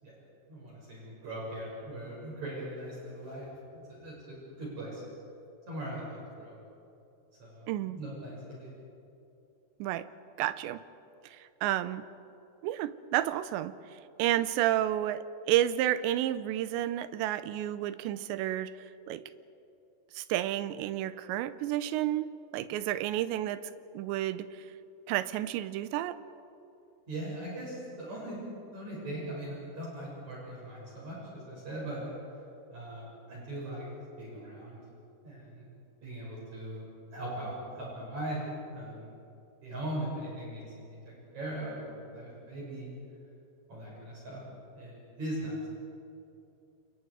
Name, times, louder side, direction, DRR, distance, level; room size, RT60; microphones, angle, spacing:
voice 1, 0.5-3.5 3.9-5.0 5.7-6.6 7.4-8.7 27.1-28.4 28.7-32.1 32.7-33.8 34.2-34.8 35.2-35.6 36.0-36.9 37.1-38.4 38.7-39.1 39.6-40.6 41.3-42.9 43.7-44.4 44.7-45.7, right 1 dB, 40° right, -6 dB, 7.5 m, -40 dB
voice 2, 7.7-8.0 9.8-10.1 10.4-10.8 11.2-12.0 12.6-13.7 14.2-18.7 19.1-19.2 20.1-24.7 25.1-26.2, right 13 dB, 90° right, 13 dB, 3.0 m, -31 dB
29.0 x 28.5 x 4.8 m, 2.7 s
omnidirectional pair, 5.0 m